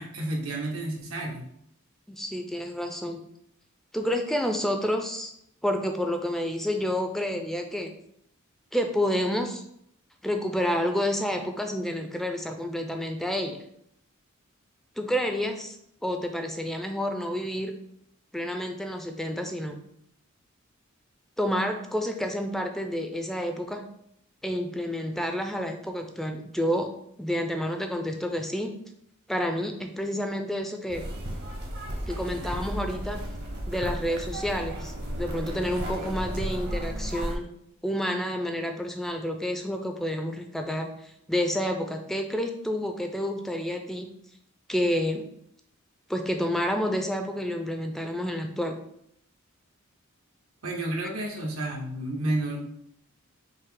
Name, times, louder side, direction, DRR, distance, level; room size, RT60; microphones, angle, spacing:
voice 1, 0.0-1.4 50.6-52.6, right 1 dB, 90° right, 0 dB, 1.1 m, -31 dB
voice 2, 2.1-3.2 3.9-5.3 5.6-7.9 8.7-9.6 10.2-13.6 15.0-15.8 16.0-17.7 18.3-19.8 21.4-23.8 24.4-26.9 27.2-28.7 29.3-31.0 32.1-33.2 33.7-37.5 37.8-44.1 44.7-45.2 46.1-48.7, equal, ahead, 4 dB, 0.3 m, -29 dB
sound 1, 30.9-37.4, equal, 55° right, 0.8 m, -34 dB
5.3 x 2.0 x 3.6 m, 0.72 s
head